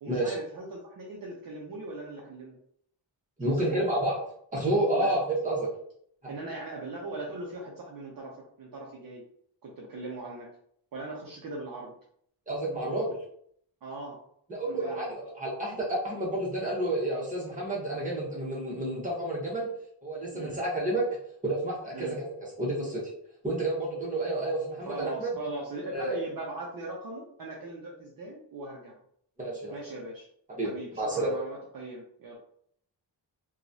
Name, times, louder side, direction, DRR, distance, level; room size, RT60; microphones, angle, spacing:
voice 1, 0.0-2.6 3.6-3.8 4.9-5.1 6.3-9.2 9.6-10.5 10.9-11.9 13.8-14.2 14.8-15.1 20.3-20.6 21.9-22.2 24.9-29.0 29.7-30.3 30.6-32.4, right 2 dB, 50° right, -3 dB, 0.6 m, -40 dB
voice 2, 3.4-4.2 4.5-5.7 6.2-6.3 12.5-13.2 14.5-19.7 20.0-21.1 21.4-23.0 23.4-25.3 25.9-26.2 29.4-29.7 30.6-31.4, right 1 dB, 20° right, -5 dB, 1.1 m, -30 dB
2.9 x 2.3 x 2.6 m, 0.67 s
wide cardioid pair, 105°, 44 cm